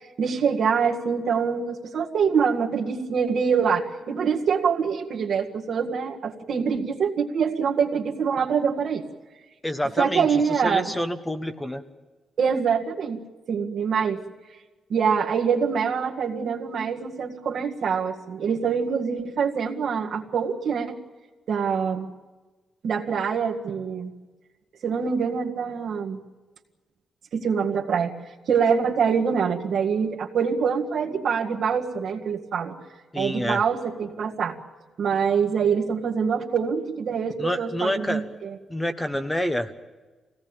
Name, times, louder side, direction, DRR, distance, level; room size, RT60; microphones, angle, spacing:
voice 1, 0.2-9.0 10.0-10.9 12.4-13.2 13.5-14.2 14.9-21.0 21.5-22.1 22.8-24.1 24.8-26.2 27.3-28.1 28.4-32.7 33.1-34.5 35.0-38.5, right 6 dB, 70° right, 1 dB, 1.8 m, -25 dB
voice 2, 9.6-11.8 33.1-33.6 37.4-38.2 38.7-39.7, equal, 10° left, 8 dB, 1.1 m, -28 dB
23.5 x 17.5 x 8.9 m, 1.3 s
cardioid pair, 115°, 0 cm